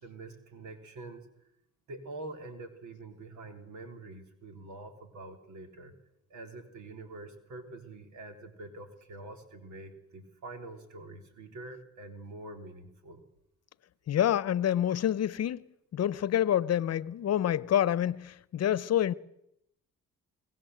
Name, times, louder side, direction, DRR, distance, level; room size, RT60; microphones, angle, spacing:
voice 1, 0.0-1.3 1.9-5.9 6.3-13.2, right 2 dB, 70° right, 3.6 m, -45 dB
voice 2, 14.1-15.6 15.9-19.1, left 10 dB, 55° left, 0.9 m, -27 dB
23.0 x 18.5 x 7.9 m
cardioid pair, 90°, 30 cm